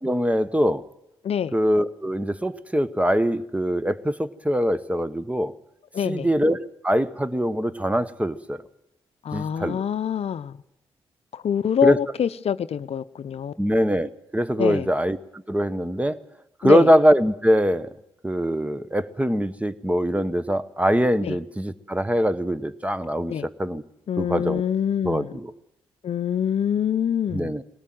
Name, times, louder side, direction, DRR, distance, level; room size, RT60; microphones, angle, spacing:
voice 1, 0.0-0.8 1.5-5.5 6.0-8.6 9.3-9.8 11.8-12.0 13.6-15.2 15.5-16.2 16.6-17.9 18.2-23.8 24.2-24.6 25.0-25.5 27.3-27.6, equal, 10° right, 14 dB, 1.2 m, -23 dB
voice 2, 1.2-1.5 5.9-6.3 9.2-10.6 11.3-13.6 14.6-14.9 16.6-16.9 21.2-21.4 23.3-23.5 24.1-25.3 26.0-27.5, left 8 dB, 60° left, 14 dB, 0.7 m, -25 dB
20.5 x 18.0 x 7.7 m, 0.87 s
hypercardioid pair, 40°, 12 cm